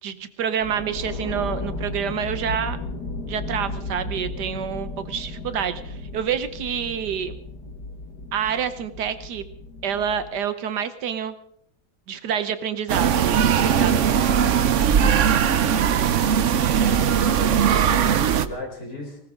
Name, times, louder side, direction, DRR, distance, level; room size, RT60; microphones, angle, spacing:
voice 1, 0.0-2.8 3.3-7.3 8.3-9.5 9.8-11.3 12.1-14.0, right 8 dB, 80° right, 12 dB, 1.5 m, -28 dB
sound 1, 0.6-10.4, left 2 dB, 70° left, 2.4 m, -34 dB
sound 2, 12.9-18.5, right 8 dB, 55° right, 0.9 m, -19 dB
voice 2, 16.8-19.2, left 1 dB, 35° left, 0 dB, 4.5 m, -36 dB
19.5 x 19.0 x 3.7 m, 0.69 s
omnidirectional pair, 1.8 m